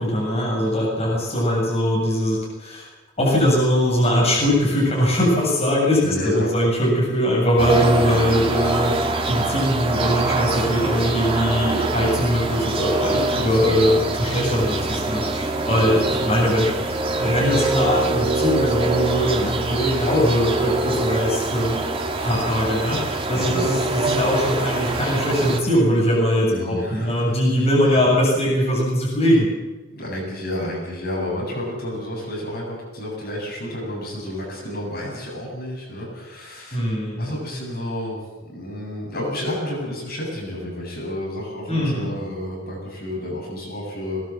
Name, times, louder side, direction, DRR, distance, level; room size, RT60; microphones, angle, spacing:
voice 1, 0.0-2.9 3.2-8.9 9.3-21.8 22.2-29.5 36.7-37.3 41.7-42.1, equal, 35° left, -4 dB, 7.5 m, -21 dB
voice 2, 6.0-6.5 13.2-14.0 15.5-16.0 23.3-23.7 26.5-28.0 30.0-36.9 37.2-38.2 38.5-44.2, left 1 dB, 55° left, -2 dB, 7.8 m, -31 dB
sound 1, 7.6-25.6, right 2 dB, 30° right, 2.0 m, -24 dB
22.0 x 19.0 x 7.6 m, 1.2 s
head